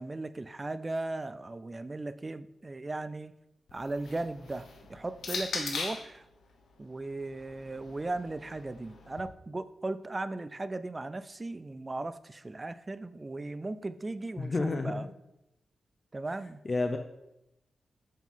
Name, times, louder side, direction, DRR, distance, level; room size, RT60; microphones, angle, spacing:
voice 1, 0.0-3.3 3.7-6.3 6.8-15.1 16.1-16.6, right 2 dB, 25° right, 13 dB, 0.3 m, -37 dB
sound 1, 3.7-6.2 7.1-9.2, left 4 dB, 85° left, 1.0 m, -40 dB
voice 2, 14.4-15.1 16.6-17.0, left 3 dB, 40° left, 5 dB, 0.6 m, -30 dB
7.3 x 3.8 x 5.5 m, 0.87 s
cardioid pair, 85°, 0 cm